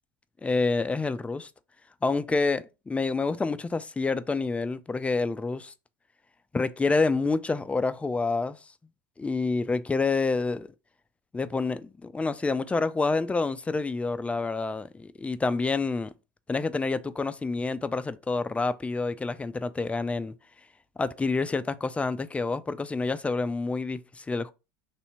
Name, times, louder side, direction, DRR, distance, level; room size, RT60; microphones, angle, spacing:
voice 1, 0.4-1.5 2.0-5.7 6.5-8.6 9.2-10.7 11.3-16.1 16.5-20.3 21.0-24.5, left 3 dB, 10° left, 0.4 m, -28 dB
3.4 x 2.8 x 4.2 m
hypercardioid pair, 85°, 10 cm